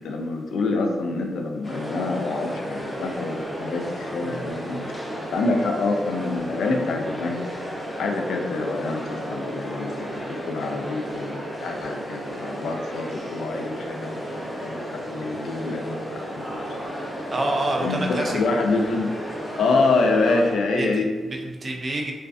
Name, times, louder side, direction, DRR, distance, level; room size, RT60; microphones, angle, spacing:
voice 1, 0.0-4.8 5.3-7.4 7.9-14.2 14.6-16.6 17.8-19.2 19.6-21.1, left 3 dB, 85° left, 2 dB, 0.3 m, -26 dB
sound 1, 1.6-20.5, equal, 10° left, 0.7 m, -33 dB
voice 2, 17.3-18.4 20.3-20.4 20.7-22.1, right 2 dB, 40° right, 0 dB, 0.4 m, -28 dB
2.4 x 2.3 x 2.3 m, 1.3 s
cardioid pair, 90°, 0 cm